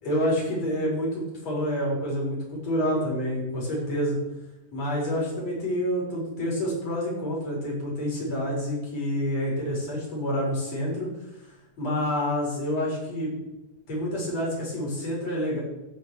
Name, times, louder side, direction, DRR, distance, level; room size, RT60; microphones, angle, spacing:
voice 1, 0.0-4.2 4.7-11.1 11.8-13.3 13.9-15.6, equal, 50° left, -3 dB, 5.4 m, -28 dB
15.0 x 5.3 x 6.2 m, 0.97 s
omnidirectional pair, 3.7 m